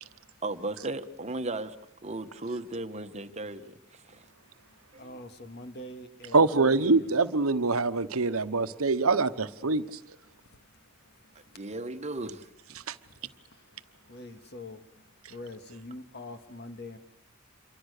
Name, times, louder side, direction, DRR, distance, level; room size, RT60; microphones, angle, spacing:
voice 1, 0.4-1.8 2.0-4.3 4.9-5.2 11.5-12.8 13.2-13.3, right 2 dB, 30° right, 1.3 m, -36 dB
voice 2, 5.0-7.1 14.1-14.8 15.3-17.0, left 2 dB, 50° left, 2.1 m, -43 dB
voice 3, 6.3-9.8 12.9-13.0, right 3 dB, 85° right, 1.1 m, -24 dB
27.5 x 24.0 x 6.7 m
head